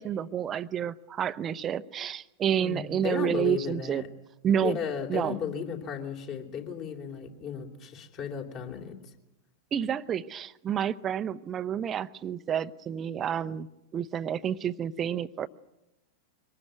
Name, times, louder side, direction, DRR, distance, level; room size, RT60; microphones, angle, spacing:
voice 1, 0.0-4.0 4.4-4.8 5.1-5.4 9.7-13.7 13.9-15.5, right 9 dB, 25° right, 15 dB, 0.8 m, -29 dB
voice 2, 2.6-4.1 4.6-8.9, left 7 dB, 40° left, 4 dB, 3.5 m, -34 dB
24.0 x 19.5 x 9.4 m, 0.94 s
figure-of-eight pair, 90°, 0 cm